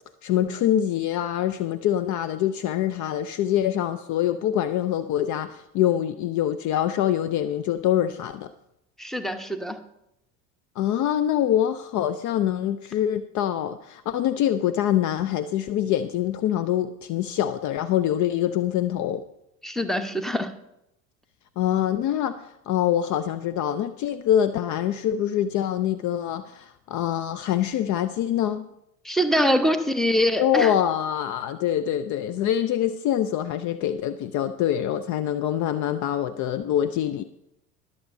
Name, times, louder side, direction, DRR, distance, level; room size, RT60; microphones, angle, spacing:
voice 1, 0.2-8.5 10.8-19.2 21.6-22.4 22.7-28.7 30.4-37.2, left 11 dB, 45° left, 12 dB, 0.5 m, -25 dB
voice 2, 9.0-9.8 19.6-20.5 29.0-30.7, equal, ahead, 9 dB, 1.0 m, -24 dB
22.0 x 7.4 x 2.7 m, 0.82 s
hypercardioid pair, 65°, 43 cm